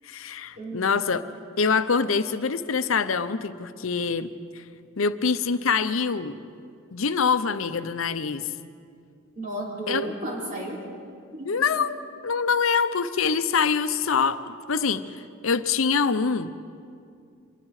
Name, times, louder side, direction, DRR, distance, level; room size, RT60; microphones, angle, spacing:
voice 1, 0.0-1.2 1.6-4.6 5.0-6.4 6.9-8.5 9.9-10.1 11.4-16.5, left 5 dB, 80° left, 11 dB, 0.7 m, -25 dB
voice 2, 0.6-0.9 9.4-10.8 11.3-11.5, right 2 dB, 40° right, -3 dB, 3.5 m, -33 dB
25.5 x 22.0 x 4.9 m, 2.4 s
head